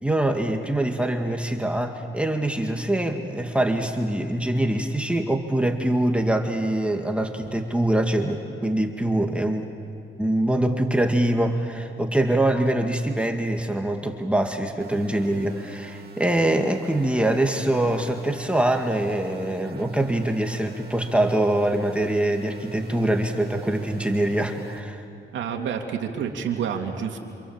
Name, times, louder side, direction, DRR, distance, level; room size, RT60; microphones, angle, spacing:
voice 1, 0.0-9.7 10.2-25.0, right 1 dB, 5° right, 3 dB, 2.0 m, -24 dB
sound 1, 14.8-24.8, right 5 dB, 50° right, 3.1 m, -44 dB
voice 2, 25.3-27.2, right 7 dB, 75° right, 2 dB, 2.6 m, -28 dB
28.5 x 27.5 x 7.5 m, 2.6 s
cardioid pair, 90°, 20 cm